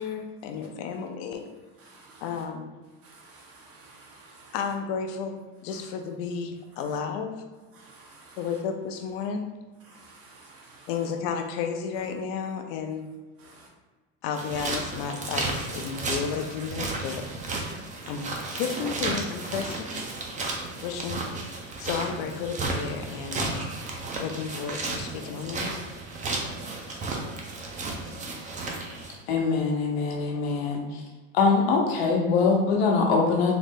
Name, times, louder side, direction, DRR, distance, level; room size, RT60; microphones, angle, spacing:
voice 1, 0.0-1.4 2.2-2.7 4.5-7.3 8.4-9.5 10.9-13.1 14.2-17.3 18.1-18.2 18.5-20.0 20.8-23.7 24.2-25.8, left 6 dB, 65° left, 5 dB, 0.5 m, -32 dB
voice 2, 1.8-2.2 3.0-4.5 7.7-8.4 9.9-10.9 13.4-13.7, right 3 dB, 50° right, -1 dB, 1.0 m, -52 dB
sound 1, 14.3-29.2, right 3 dB, 25° right, 0.6 m, -33 dB
voice 3, 29.3-31.0 31.3-33.5, left 4 dB, 90° left, 0 dB, 0.9 m, -23 dB
3.8 x 2.1 x 3.6 m, 1.3 s
supercardioid pair, 115°, 31 cm